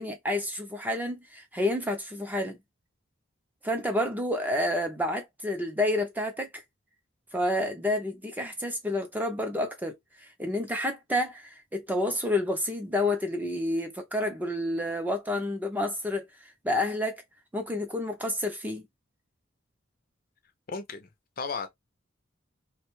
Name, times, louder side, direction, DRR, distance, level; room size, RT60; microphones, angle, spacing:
voice 1, 0.0-2.6 3.6-6.5 7.3-16.3 16.6-17.2 17.5-18.9, left 1 dB, 10° right, 0.5 m, -29 dB
voice 2, 20.7-21.1 21.4-21.7, left 4 dB, 45° left, 0.5 m, -34 dB
2.6 x 2.2 x 3.0 m
head